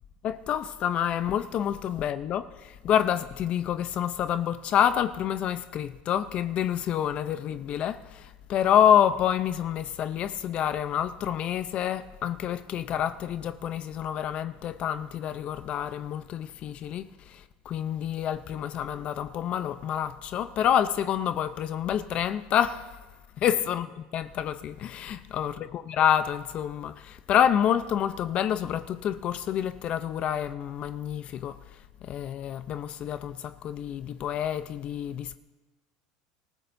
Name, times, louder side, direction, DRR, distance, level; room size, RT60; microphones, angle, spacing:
voice 1, 0.2-23.0 23.4-23.8 24.1-31.6 32.0-35.3, left 9 dB, 45° left, 0.6 m, -28 dB
25.5 x 14.5 x 2.7 m
supercardioid pair, 110°, 3 cm